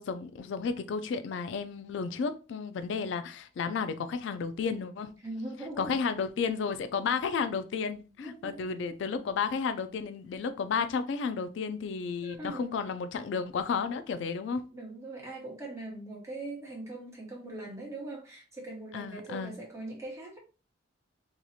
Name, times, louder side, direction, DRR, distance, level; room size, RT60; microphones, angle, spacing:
voice 1, 0.0-5.1 5.8-14.6 18.9-19.6, left 5 dB, 70° left, 0.3 m, -32 dB
voice 2, 5.2-6.0 8.2-8.6 12.2-12.7 14.7-20.4, right 2 dB, 15° right, 1.1 m, -41 dB
2.8 x 2.4 x 4.1 m
head